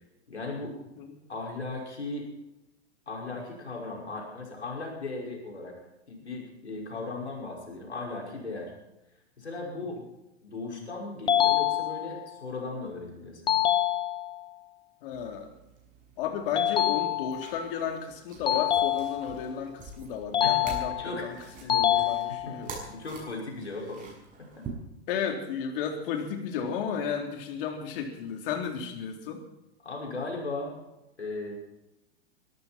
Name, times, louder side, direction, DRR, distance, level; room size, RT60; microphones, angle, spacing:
voice 1, 0.3-0.8 1.3-2.3 3.1-5.8 6.1-8.7 9.4-10.0 10.4-13.7 20.4-20.6 20.9-22.6 22.8-24.1 24.4-24.6 29.8-30.7 31.2-31.5, left 3 dB, 90° left, -1 dB, 5.7 m, -37 dB
sound 1, 11.3-12.3 13.5-14.5 16.6-17.6 18.5-19.5 20.3-21.2 21.7-22.7, left 11 dB, 15° left, 0.6 m, -26 dB
voice 2, 15.0-15.5 16.2-21.4 21.6-22.7 25.1-29.4, left 7 dB, 55° left, 3 dB, 3.7 m, -33 dB
sound 2, 15.1-24.7, right 4 dB, 25° right, 6.8 m, -47 dB
23.5 x 14.0 x 4.5 m, 0.92 s
hypercardioid pair, 110°, 33 cm